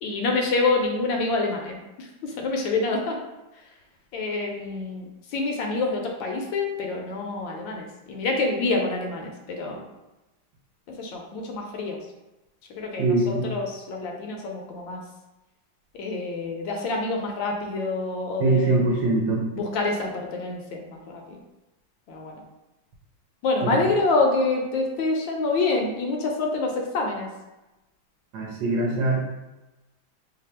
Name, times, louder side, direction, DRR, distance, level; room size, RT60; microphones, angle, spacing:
voice 1, 0.0-3.2 4.1-9.9 10.9-12.0 12.7-15.0 15.9-18.8 19.5-21.4 22.1-22.4 23.4-27.3, left 3 dB, 75° left, 1 dB, 1.2 m, -27 dB
voice 2, 13.0-13.5 18.4-19.5 23.6-23.8 28.3-29.2, right 2 dB, 65° right, -3 dB, 1.1 m, -22 dB
3.3 x 2.3 x 4.2 m, 1.0 s
omnidirectional pair, 2.2 m